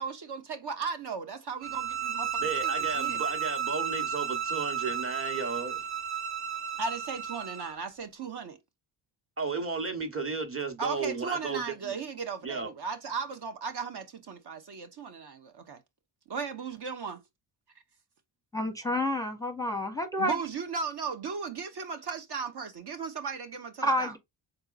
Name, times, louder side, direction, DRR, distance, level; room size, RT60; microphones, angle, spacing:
voice 1, 0.0-3.2 6.8-8.6 10.8-15.8 16.3-17.2 20.2-24.1, right 5 dB, 50° right, 0.8 m, -36 dB
sound 1, 1.6-7.8, right 7 dB, 70° right, 1.4 m, -33 dB
voice 2, 2.4-5.9 9.4-11.9 12.4-12.7, right 4 dB, 25° right, 1.1 m, -34 dB
voice 3, 18.5-20.3 23.8-24.2, left 1 dB, 5° left, 0.7 m, -29 dB
4.4 x 3.9 x 2.5 m
cardioid pair, 80°, 49 cm